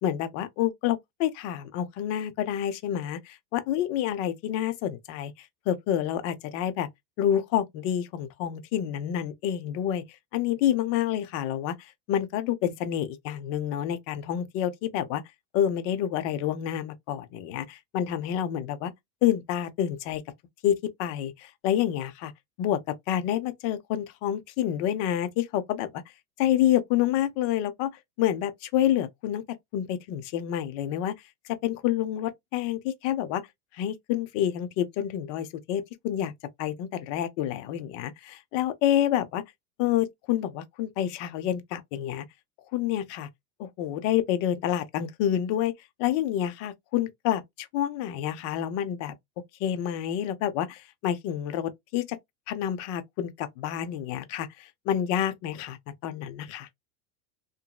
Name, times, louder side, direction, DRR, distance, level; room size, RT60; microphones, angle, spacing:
voice 1, 0.0-5.3 5.7-6.9 7.2-10.0 10.3-11.8 12.1-15.2 15.5-18.9 19.2-20.2 20.6-22.3 22.6-26.0 26.4-27.9 28.2-29.4 29.7-31.1 31.4-33.4 33.7-36.3 36.6-39.4 39.8-42.2 42.7-43.3 43.6-45.7 46.0-49.1 49.6-52.2 52.5-56.7, left 11 dB, 40° left, 0.4 m, -28 dB
2.9 x 2.6 x 2.3 m
supercardioid pair, 150°, 39 cm